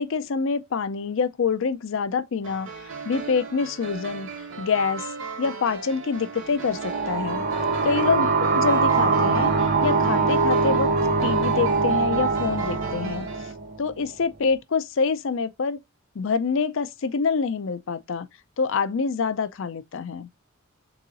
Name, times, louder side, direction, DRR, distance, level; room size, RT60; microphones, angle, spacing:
voice 1, 0.0-2.7 3.0-4.3 4.6-5.1 5.4-7.4 7.8-8.3 8.5-10.9 11.2-13.3 13.8-15.8 16.2-18.3 18.6-20.3, left 5 dB, 65° left, 0.5 m, -26 dB
sound 1, 2.4-13.5, right 5 dB, 65° right, 1.1 m, -37 dB
sound 2, 6.6-14.1, right 4 dB, 50° right, 0.7 m, -23 dB
3.8 x 3.0 x 3.8 m
head